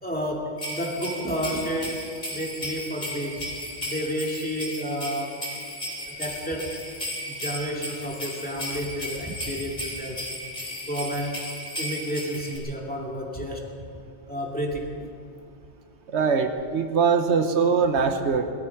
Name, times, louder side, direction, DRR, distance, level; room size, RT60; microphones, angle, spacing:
voice 1, 0.0-3.5 3.9-5.4 6.1-6.7 7.3-10.2 10.9-11.4 11.8-13.7 14.3-15.1, equal, 10° left, -2 dB, 2.3 m, -31 dB
sound 1, 0.6-12.6, equal, 40° left, 3.8 m, -35 dB
voice 2, 16.1-18.5, right 5 dB, 75° right, 7 dB, 1.2 m, -22 dB
19.0 x 13.5 x 5.8 m, 2.4 s
omnidirectional pair, 1.2 m